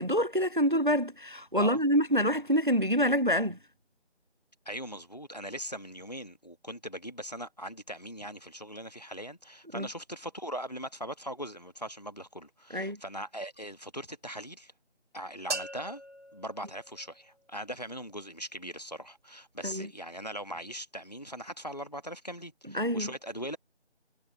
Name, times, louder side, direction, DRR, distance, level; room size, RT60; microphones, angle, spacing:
voice 1, 0.0-3.6 9.7-9.9 12.7-13.0 19.6-19.9 22.7-23.1, equal, 45° right, 0.5 m, -26 dB
voice 2, 4.6-14.7 15.1-16.0 16.3-23.6, equal, 35° left, 1.4 m, -40 dB
sound 1, 15.5-17.5, right 2 dB, 90° right, 1.7 m, -40 dB
figure-of-eight pair, 180°, 34 cm